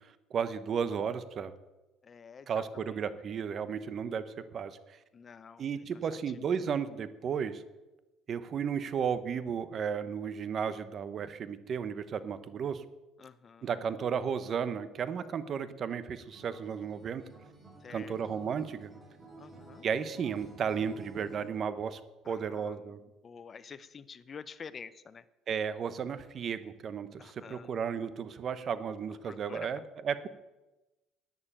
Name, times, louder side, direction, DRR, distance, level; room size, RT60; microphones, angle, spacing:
voice 1, 0.3-1.5 2.5-4.8 5.6-7.6 8.3-12.8 13.6-17.2 17.9-18.9 19.8-22.0 22.3-23.0 25.5-30.3, right 7 dB, 40° right, 13 dB, 1.0 m, -34 dB
voice 2, 2.0-2.6 5.1-5.6 13.2-13.7 17.8-18.1 19.4-19.8 22.2-22.8 23.2-25.2 27.2-27.7 29.3-29.8, left 6 dB, 30° left, 14 dB, 0.7 m, -48 dB
Acoustic guitar, 16.3-21.5, right 3 dB, 10° right, 3.7 m, -52 dB
11.0 x 9.6 x 9.1 m, 1.1 s
cardioid pair, 135°, 0 cm